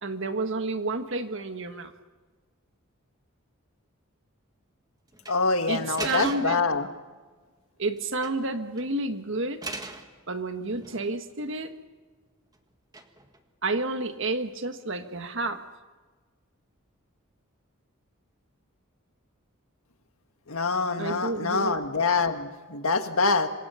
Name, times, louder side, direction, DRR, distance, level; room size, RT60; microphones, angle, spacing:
voice 1, 0.0-1.9 5.7-6.6 7.8-9.6 10.3-11.7 13.6-15.6 21.0-21.8, right 2 dB, 60° right, 8 dB, 1.6 m, -30 dB
sound 1, 5.1-5.4 6.0-6.7 8.0-8.5 8.8-8.9 9.6-10.1 10.6-11.3 12.9-13.4, right 2 dB, 20° right, 1.5 m, -38 dB
voice 2, 5.3-6.9 20.5-23.5, left 4 dB, 80° left, 7 dB, 1.7 m, -25 dB
27.0 x 25.0 x 5.8 m, 1.3 s
head